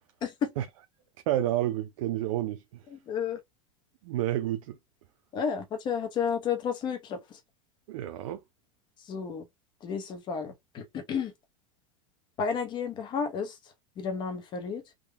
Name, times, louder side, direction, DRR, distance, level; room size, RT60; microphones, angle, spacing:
voice 1, 1.3-2.8 4.0-4.8 7.9-8.4, right 13 dB, 70° right, 0.5 m, -30 dB
voice 2, 2.9-3.4 5.3-7.4 9.0-9.4 9.8-11.3 12.4-13.6 14.0-14.8, left 6 dB, 25° left, 0.8 m, -32 dB
3.7 x 2.2 x 3.2 m
supercardioid pair, 155°, 17 cm